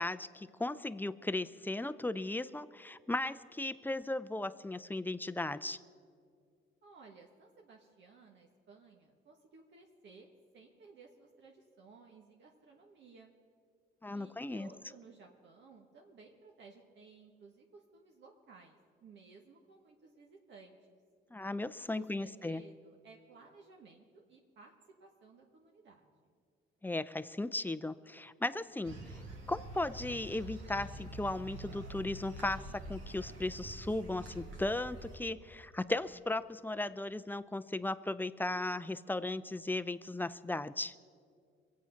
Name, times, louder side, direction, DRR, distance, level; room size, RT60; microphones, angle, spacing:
voice 1, 0.0-5.8 14.0-14.7 21.3-22.6 26.8-29.2 29.5-40.9, left 2 dB, 10° left, 13 dB, 0.5 m, -36 dB
voice 2, 6.8-13.3 14.1-21.0 21.9-26.3, right 4 dB, 65° right, 0 dB, 1.4 m, -58 dB
sound 1, 28.8-35.2, right 1 dB, 90° right, 2.4 m, -46 dB
22.5 x 8.4 x 5.7 m, 2.2 s
cardioid pair, 90°, 20 cm